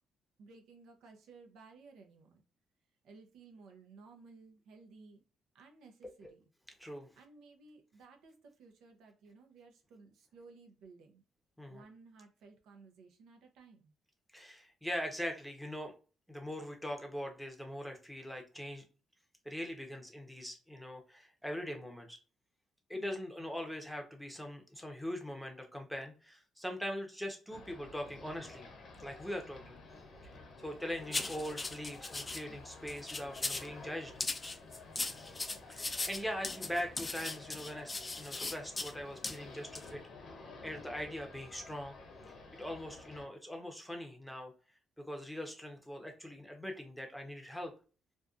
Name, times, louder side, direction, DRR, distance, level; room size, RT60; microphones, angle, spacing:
voice 1, 0.4-2.4 3.0-5.2 5.5-6.4 7.2-11.2 11.7-13.9 22.9-23.2 32.5-32.7 36.2-36.3, right 4 dB, 85° right, 3 dB, 0.6 m, -57 dB
voice 2, 14.3-15.9 16.3-18.8 19.4-22.2 22.9-28.7 29.0-29.8 30.2-34.1 35.7-40.0 40.6-42.0 42.6-44.5 45.0-47.7, equal, ahead, 3 dB, 0.7 m, -41 dB
sound 1, 27.5-43.3, left 3 dB, 60° left, 0.7 m, -52 dB
sound 2, 31.1-32.4 32.9-33.7 34.2-38.9 39.2-39.4 39.7-39.9, left 3 dB, 25° left, 0.3 m, -38 dB
2.6 x 2.2 x 2.4 m, 0.35 s
cardioid pair, 90°, 0 cm